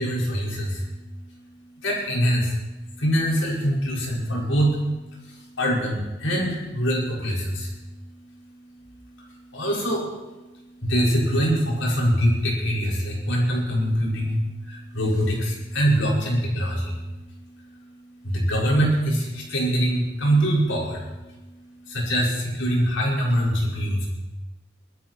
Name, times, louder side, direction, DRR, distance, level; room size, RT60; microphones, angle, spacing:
voice 1, 0.0-24.1, equal, 85° left, -3 dB, 5.7 m, -25 dB
21.5 x 13.5 x 4.7 m, 1.1 s
head